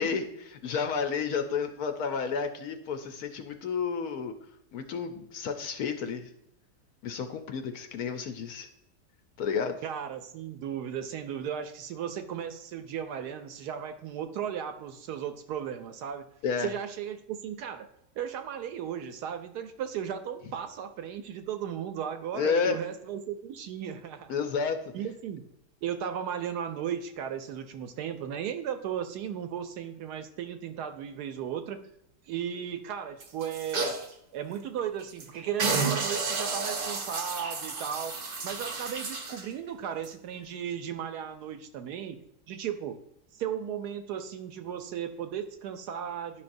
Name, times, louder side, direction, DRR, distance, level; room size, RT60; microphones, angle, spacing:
voice 1, 0.0-4.3 4.7-6.3 7.0-8.7 9.4-9.8 16.4-16.7 22.3-22.8 24.3-24.8, left 6 dB, 70° left, 6 dB, 1.0 m, -31 dB
voice 2, 9.8-16.3 16.6-17.9 18.2-24.4 24.9-25.4 25.8-31.8 32.3-34.0 34.3-38.2 38.4-42.2 42.5-43.0 43.3-46.4, right 9 dB, 70° right, 9 dB, 1.0 m, -35 dB
sound 1, 33.2-34.1 34.6-34.7 35.0-35.3 35.6-39.5 40.0-40.1, right 4 dB, 50° right, 0.6 m, -31 dB
10.5 x 5.6 x 2.6 m, 0.81 s
omnidirectional pair, 1.9 m